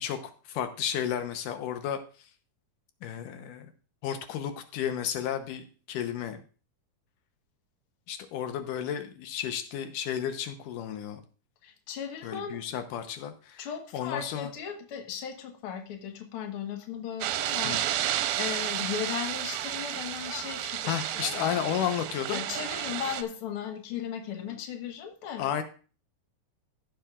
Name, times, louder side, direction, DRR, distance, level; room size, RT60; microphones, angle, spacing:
voice 1, 0.0-2.0 3.0-3.7 4.0-6.4 8.1-11.2 12.2-13.6 13.9-14.5 17.6-17.8 20.8-22.4 25.4-25.6, left 9 dB, 80° left, 8 dB, 2.5 m, -32 dB
voice 2, 11.6-12.6 13.6-21.5 22.3-25.4, left 8 dB, 55° left, 4 dB, 1.8 m, -37 dB
sound 1, 17.2-23.2, right 12 dB, 85° right, 2.2 m, -32 dB
16.0 x 7.5 x 2.4 m, 0.36 s
omnidirectional pair, 3.7 m